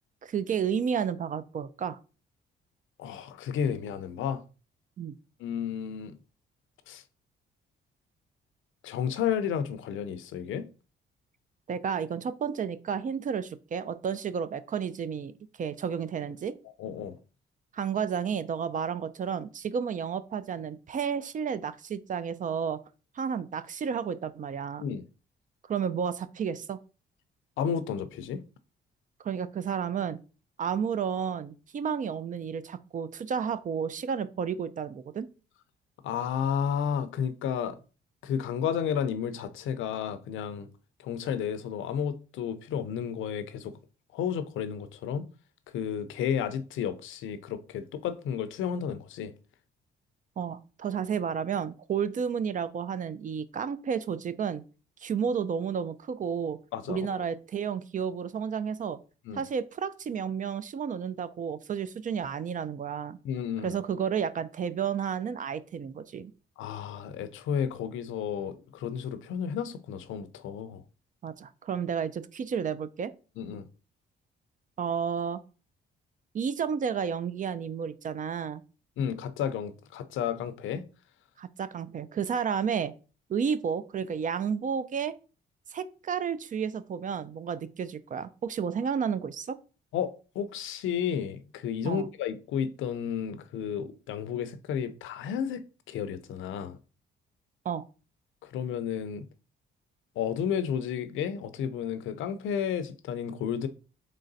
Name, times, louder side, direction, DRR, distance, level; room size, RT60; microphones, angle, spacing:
voice 1, 0.2-2.0 5.0-5.1 11.7-15.3 15.6-16.5 17.7-22.8 23.2-24.8 25.7-26.8 29.2-30.2 30.6-35.3 50.4-54.6 55.0-56.6 56.9-59.0 59.3-63.2 63.6-66.3 71.2-73.1 74.8-75.4 76.3-78.6 81.4-82.9 83.3-85.1 85.7-89.6 91.8-92.1 97.6-97.8, right 7 dB, 40° right, 0.4 m, -31 dB
voice 2, 3.0-4.4 5.4-6.2 6.9-7.0 8.8-10.7 16.8-17.2 24.8-25.0 27.6-28.4 36.0-37.8 38.2-40.7 41.0-43.7 44.1-45.3 45.7-49.3 56.7-57.0 59.3-59.4 63.2-63.8 66.6-70.8 73.4-73.7 79.0-80.8 89.9-96.8 98.4-99.3 100.2-103.7, left 8 dB, 80° left, 0.5 m, -32 dB
3.8 x 3.3 x 3.9 m
cardioid pair, 90°, 20 cm